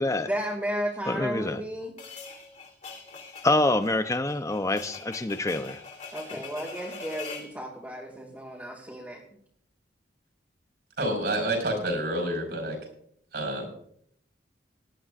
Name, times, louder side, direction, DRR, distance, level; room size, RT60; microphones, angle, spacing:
voice 1, 0.2-1.9 6.1-9.2, equal, 10° right, -5 dB, 2.2 m, -33 dB
voice 2, 1.1-1.6 3.4-5.8 6.3-6.4, left 2 dB, 20° left, 10 dB, 0.7 m, -26 dB
sound 1, 2.0-7.5, left 4 dB, 45° left, 3.5 m, -43 dB
voice 3, 11.0-12.8 13.3-13.7, right 1 dB, 65° right, 3 dB, 5.2 m, -28 dB
19.0 x 11.5 x 2.5 m, 0.66 s
head